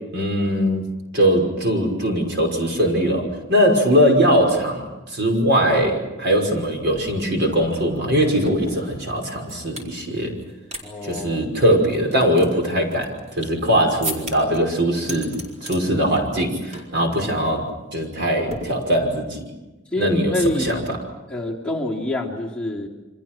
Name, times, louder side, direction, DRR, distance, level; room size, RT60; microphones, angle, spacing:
voice 1, 0.1-0.9 1.1-10.4 11.0-19.4 20.0-21.0, equal, 60° right, 2 dB, 5.7 m, -21 dB
sound 1, 6.6-6.7 6.9-9.9 10.4-10.8 11.1-11.2 11.7-13.6 14.0-14.6 15.0-15.8 16.2-16.5 16.7-17.0 17.3-17.5 18.5-19.3, equal, 35° right, 4.4 m, -35 dB
voice 2, 10.8-11.5 19.9-20.8 21.3-22.9, left 1 dB, 5° left, -4 dB, 3.1 m, -26 dB
29.0 x 25.5 x 6.1 m, 1.1 s
head